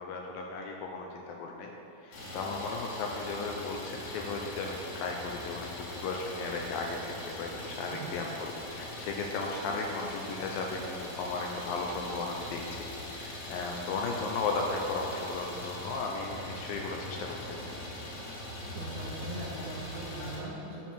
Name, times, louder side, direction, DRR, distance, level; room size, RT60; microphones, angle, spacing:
voice 1, 0.0-1.7 2.0-17.8, left 3 dB, 80° left, 1 dB, 2.2 m, -36 dB
Idling, 2.1-20.4, left 1 dB, 55° left, 2.6 m, -41 dB
voice 2, 18.7-20.9, right 2 dB, 70° right, -5 dB, 2.0 m, -41 dB
9.2 x 4.5 x 6.1 m, 2.9 s
omnidirectional pair, 4.5 m